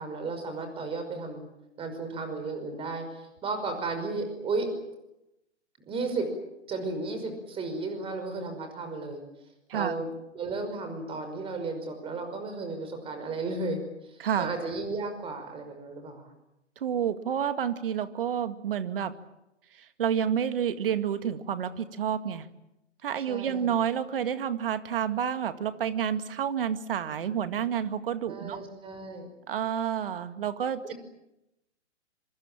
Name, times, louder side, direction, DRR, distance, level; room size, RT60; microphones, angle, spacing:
voice 1, 0.0-1.4 1.8-4.7 5.9-6.3 6.7-9.2 9.7-10.1 10.3-16.3 23.3-23.7 28.3-29.3 30.9-31.0, right 3 dB, 15° right, 7 dB, 5.5 m, -34 dB
voice 2, 14.2-14.5 16.8-19.1 20.0-22.5 23.0-28.6 29.5-30.9, right 8 dB, 50° right, 10 dB, 2.1 m, -29 dB
26.0 x 25.0 x 7.5 m, 0.89 s
figure-of-eight pair, 125°, 36 cm